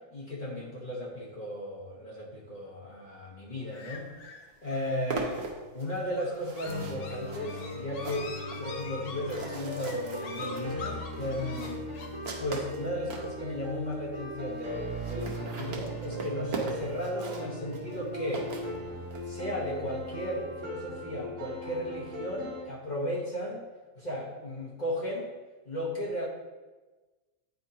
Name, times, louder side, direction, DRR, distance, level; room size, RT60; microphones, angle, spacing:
voice 1, 0.1-4.1 4.6-5.4 5.7-8.3 8.6-11.9 12.4-18.5 19.2-23.6 23.9-25.3 25.7-26.3, left 1 dB, 40° left, -4 dB, 1.1 m, -35 dB
sound 1, 3.7-12.1, left 4 dB, 75° left, 1.0 m, -44 dB
sound 2, 4.1-4.2 4.5-13.3 13.9-14.0 14.2-14.3 14.5-14.6 14.9-19.2, right 4 dB, 55° right, 1.1 m, -41 dB
sound 3, 6.6-22.6, equal, 70° right, 1.4 m, -39 dB
9.3 x 4.3 x 2.8 m, 1.2 s
omnidirectional pair, 1.3 m